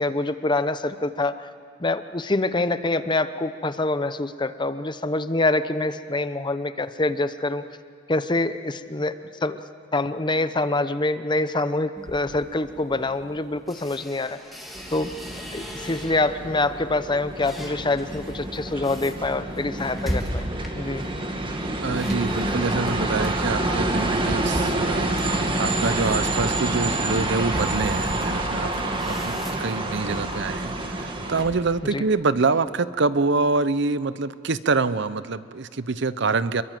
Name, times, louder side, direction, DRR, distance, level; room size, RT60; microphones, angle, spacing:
voice 1, 0.0-1.4 1.8-7.6 8.1-9.1 9.4-9.6 9.9-14.4 14.9-15.1 15.5-21.0 31.9-32.0, left 2 dB, 25° left, 12 dB, 0.8 m, -25 dB
sound 1, 12.0-16.5 16.9-31.7, equal, ahead, 3.2 m, -37 dB
sound 2, 14.7-31.4, right 2 dB, 25° right, 2.0 m, -28 dB
voice 2, 21.8-28.7 29.0-36.6, right 3 dB, 65° right, 14 dB, 0.8 m, -26 dB
27.0 x 22.5 x 7.6 m, 2.3 s
head